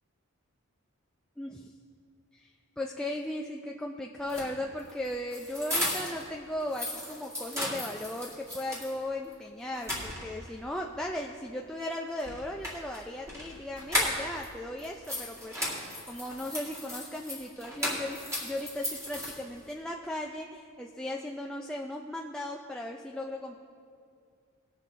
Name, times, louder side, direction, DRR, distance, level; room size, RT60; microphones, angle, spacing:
voice 1, 1.4-1.7 2.3-2.5 2.8-23.6, left 1 dB, 5° left, 0 dB, 0.4 m, -37 dB
sound 1, 4.2-6.3 6.6-8.9 9.3-9.4 9.7-10.6 12.2-14.5 14.8-19.7, left 1 dB, 15° right, 2.2 m, -35 dB
19.5 x 6.7 x 3.7 m, 2.4 s
head